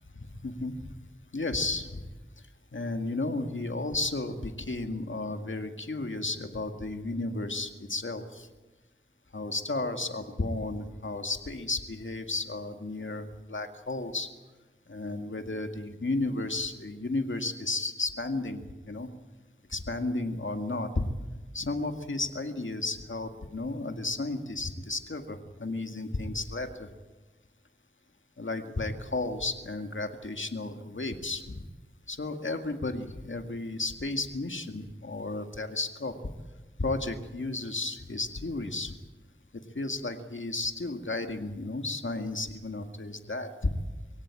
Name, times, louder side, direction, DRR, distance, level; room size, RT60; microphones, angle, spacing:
voice 1, 0.4-0.7 1.3-2.0 2.7-8.5 9.3-14.3 14.9-19.1 19.7-21.1 21.5-26.9 28.4-31.7 32.1-36.1 36.8-38.9 39.7-43.8, left 2 dB, 70° left, 6 dB, 2.0 m, -33 dB
23.0 x 17.0 x 8.9 m, 1.2 s
wide cardioid pair, 45°, 21 cm